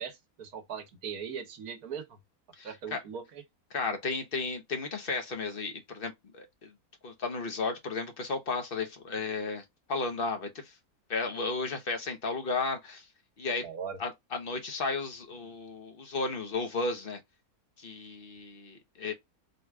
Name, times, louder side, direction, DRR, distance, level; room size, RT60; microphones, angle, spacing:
voice 1, 0.0-2.2 2.6-3.4 13.6-14.0, right 7 dB, 80° right, 1.5 m, -39 dB
voice 2, 2.6-3.0 3.7-6.7 7.0-9.6 9.9-10.7 11.1-13.1 13.4-13.7 14.0-17.2 17.8-19.1, left 3 dB, 45° left, 1.0 m, -34 dB
4.1 x 2.3 x 4.5 m
omnidirectional pair, 1.6 m